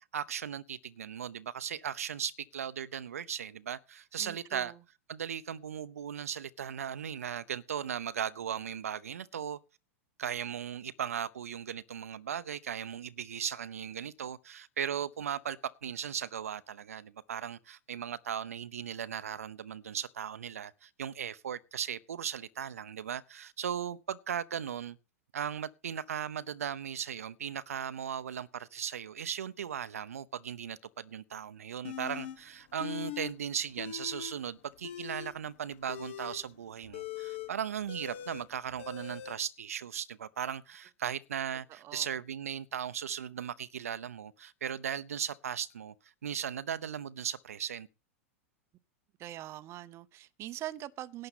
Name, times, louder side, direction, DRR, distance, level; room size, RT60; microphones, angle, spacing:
voice 1, 0.1-4.7 5.1-9.6 10.2-25.0 25.3-45.9 46.2-47.9, right 8 dB, 75° right, 0.7 m, -37 dB
voice 2, 4.2-4.7 41.8-42.0 49.2-51.3, right 14 dB, 35° right, 0.7 m, -43 dB
sound 1, 31.8-32.4 32.8-33.3 33.6-34.4 34.7-39.4, left 11 dB, 55° left, 1.3 m, -41 dB
11.5 x 7.7 x 5.6 m
hypercardioid pair, 100°, 8 cm